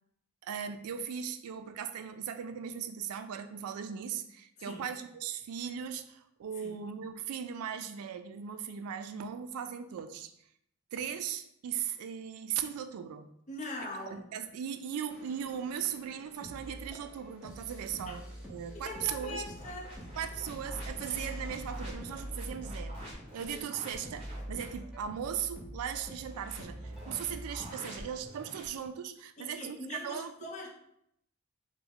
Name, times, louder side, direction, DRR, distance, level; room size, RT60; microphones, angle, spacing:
voice 1, 0.4-10.3 10.9-13.3 14.1-19.4 20.2-23.0 23.3-30.5, right 8 dB, 90° right, 9 dB, 0.3 m, -38 dB
voice 2, 13.5-14.3 18.7-20.1 29.4-30.7, left 2 dB, 35° left, 0 dB, 0.6 m, -42 dB
sound 1, 15.0-27.7, right 1 dB, 5° right, 0.8 m, -45 dB
sound 2, 15.1-22.3, left 1 dB, 85° left, 1.0 m, -57 dB
sound 3, 19.6-24.8 26.2-28.7, equal, 25° right, 1.2 m, -48 dB
3.4 x 2.1 x 3.5 m, 0.74 s
head